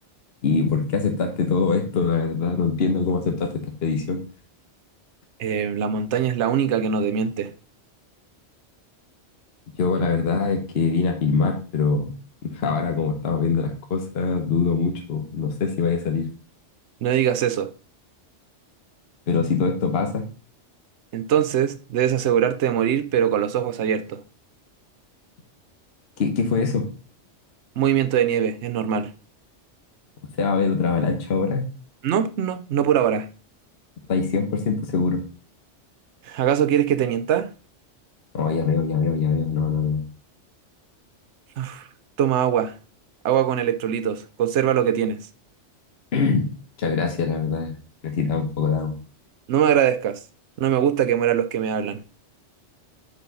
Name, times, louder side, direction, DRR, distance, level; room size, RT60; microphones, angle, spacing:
voice 1, 0.4-4.2 9.8-12.1 12.4-16.3 19.3-20.2 26.2-26.9 30.4-31.6 34.1-35.2 38.3-40.0 46.1-46.5 46.8-47.7 48.0-49.0, left 5 dB, 60° left, 1.2 m, -23 dB
voice 2, 5.4-7.5 17.0-17.7 21.1-24.2 27.8-29.1 32.0-33.3 36.3-37.5 41.6-41.9 42.2-42.7 43.2-45.2 49.5-50.2 50.6-52.0, right 9 dB, 75° right, 1.0 m, -22 dB
6.9 x 4.9 x 3.9 m
omnidirectional pair, 1.2 m